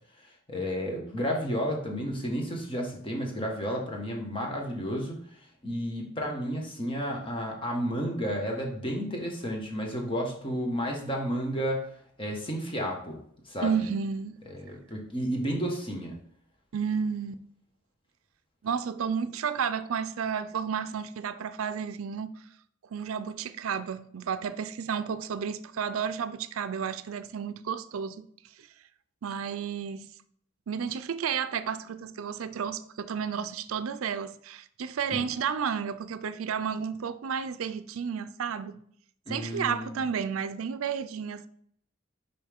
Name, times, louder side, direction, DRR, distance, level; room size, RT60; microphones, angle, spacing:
voice 1, 0.2-11.9 12.2-13.2 13.4-13.9 14.5-16.2 35.1-35.2 39.3-40.0, equal, 25° left, 1.2 m, -32 dB
voice 2, 13.6-14.4 16.7-17.4 18.6-22.4 22.9-28.2 28.6-28.7 29.2-30.1 30.7-38.8 39.3-41.5, right 7 dB, 80° right, 0.4 m, -32 dB
5.5 x 5.5 x 3.5 m
head